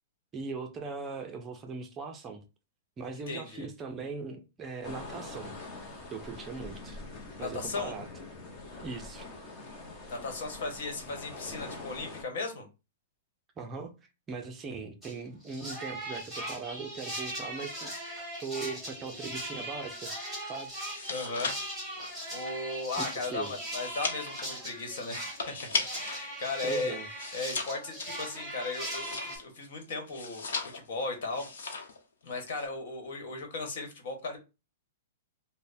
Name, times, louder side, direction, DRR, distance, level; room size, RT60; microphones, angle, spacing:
voice 1, 0.3-2.4 3.0-5.6 6.1-7.0 7.4-8.1 8.8-9.2 13.6-13.9 14.3-20.1 20.5-20.9 23.0-23.5 26.6-27.1, right 4 dB, 20° right, 0.5 m, -40 dB
voice 2, 3.3-3.7 7.4-7.9 10.1-12.7 21.1-21.5 22.3-27.0 27.3-30.5 30.7-31.7 32.2-34.4, left 3 dB, 65° left, 1.2 m, -36 dB
sound 1, 4.8-12.2, left 3 dB, 25° left, 0.8 m, -44 dB
sound 2, 15.0-15.2 15.4-29.4, right 1 dB, ahead, 1.6 m, -39 dB
sound 3, 20.8-26.2 26.6-29.6 30.1-31.0 31.3-32.0 32.3-32.7, left 4 dB, 85° left, 0.8 m, -37 dB
3.2 x 2.1 x 4.1 m
hypercardioid pair, 150°, 0 cm